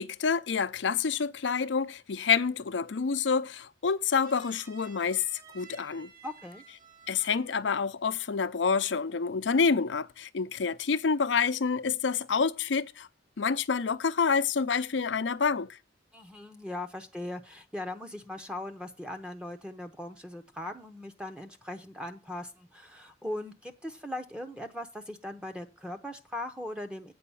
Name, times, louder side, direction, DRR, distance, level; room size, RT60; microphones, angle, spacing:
voice 1, 0.0-5.2 5.5-6.1 7.1-13.1 13.4-15.8, left 5 dB, 85° left, 0.6 m, -28 dB
sound 1, 4.2-7.9 8.1-8.5, right 5 dB, 50° right, 2.2 m, -54 dB
voice 2, 6.2-6.6 16.1-27.1, left 1 dB, 5° right, 0.7 m, -39 dB
8.5 x 4.8 x 6.9 m
head